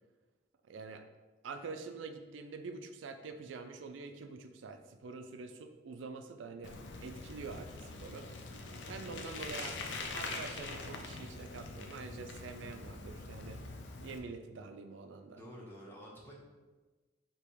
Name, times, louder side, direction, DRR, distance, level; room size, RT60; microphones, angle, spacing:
voice 1, 0.7-1.0 1.4-6.7 7.0-8.3 8.9-9.8 10.1-13.6 14.0-15.4, right 4 dB, 75° right, 7 dB, 0.4 m, -46 dB
Bicycle, 6.6-14.2, left 3 dB, 65° left, 0.5 m, -44 dB
voice 2, 15.2-16.4, equal, 10° left, -4 dB, 0.8 m, -51 dB
3.4 x 2.9 x 4.6 m, 1.3 s
head